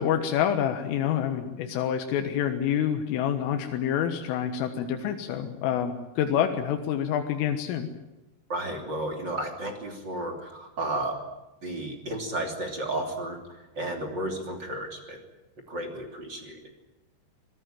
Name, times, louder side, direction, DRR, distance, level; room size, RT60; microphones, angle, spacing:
voice 1, 0.0-7.9, left 9 dB, 90° left, 5 dB, 4.0 m, -27 dB
voice 2, 8.5-11.2 11.6-13.4 13.7-15.2 15.7-16.6, right 1 dB, 30° right, 3 dB, 2.7 m, -33 dB
25.0 x 18.5 x 9.1 m, 1.0 s
omnidirectional pair, 5.6 m